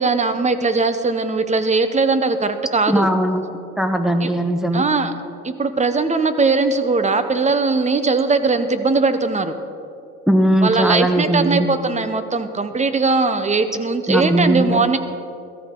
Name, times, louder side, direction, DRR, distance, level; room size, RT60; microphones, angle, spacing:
voice 1, 0.0-3.1 4.2-4.3 4.7-5.1 5.4-9.6 10.6-15.0, right 4 dB, 20° right, 10 dB, 0.9 m, -19 dB
voice 2, 2.9-3.4 3.8-4.8 10.3-11.7 14.1-14.9, right 1 dB, ahead, 6 dB, 1.1 m, -19 dB
16.0 x 13.5 x 3.8 m, 2.6 s
cardioid pair, 110°, 34 cm